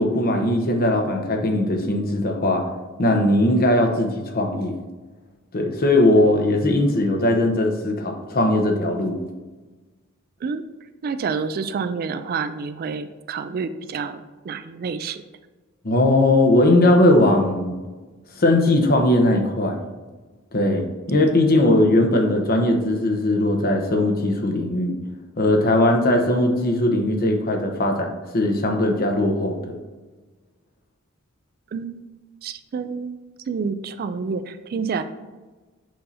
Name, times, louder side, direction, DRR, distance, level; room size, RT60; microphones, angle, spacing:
voice 1, 0.0-2.6 3.0-4.7 5.5-9.2 15.8-17.7 18.4-19.8 20.5-25.0 25.4-29.8, left 1 dB, 45° left, 3 dB, 0.9 m, -19 dB
voice 2, 11.0-15.2 31.7-32.1 32.4-33.2 33.5-35.0, right 5 dB, 45° right, 11 dB, 0.3 m, -28 dB
7.5 x 2.8 x 5.5 m, 1.3 s
head